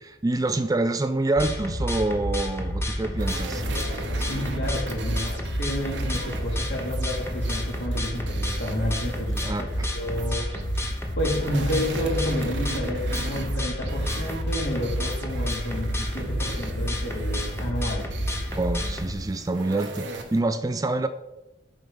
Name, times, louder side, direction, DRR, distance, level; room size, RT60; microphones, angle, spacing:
voice 1, 0.0-3.6 9.4-9.9 18.5-21.1, right 2 dB, 20° right, 10 dB, 0.4 m, -26 dB
sound 1, 1.4-19.1, equal, 15° left, 0.9 m, -29 dB
sound 2, 3.2-20.4, right 2 dB, 65° right, 1.0 m, -39 dB
voice 2, 4.1-9.7 9.9-10.5 11.2-18.1 20.4-20.5, left 1 dB, 60° left, -2 dB, 2.6 m, -30 dB
7.7 x 4.8 x 5.4 m, 0.94 s
head